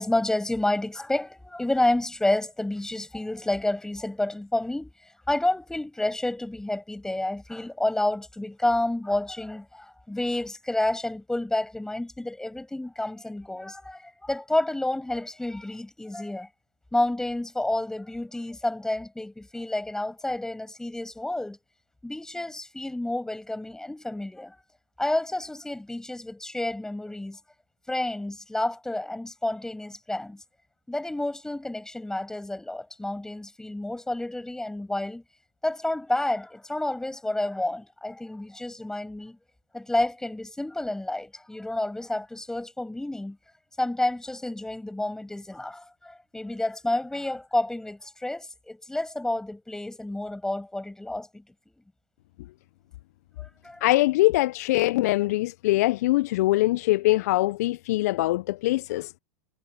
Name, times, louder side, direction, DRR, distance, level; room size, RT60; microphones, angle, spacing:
voice 1, 0.0-4.9 5.3-16.5 16.9-21.6 22.0-24.5 25.0-27.4 27.9-30.4 30.9-35.2 35.6-39.4 39.7-43.4 43.8-51.4 53.4-53.8, left 1 dB, 5° left, 6.8 m, -29 dB
voice 2, 53.8-59.2, left 18 dB, 65° left, 0.8 m, -23 dB
hypercardioid pair, 90°, 9 cm